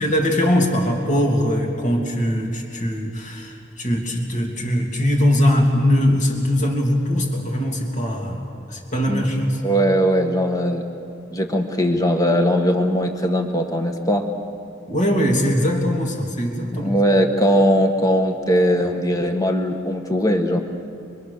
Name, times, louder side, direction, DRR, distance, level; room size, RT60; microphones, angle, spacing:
voice 1, 0.0-9.6 14.9-17.0, equal, 45° left, 1 dB, 2.8 m, -21 dB
voice 2, 9.6-10.8 11.3-14.2 16.7-20.6, equal, 20° left, 5 dB, 1.6 m, -19 dB
24.5 x 24.5 x 6.8 m, 2.5 s
head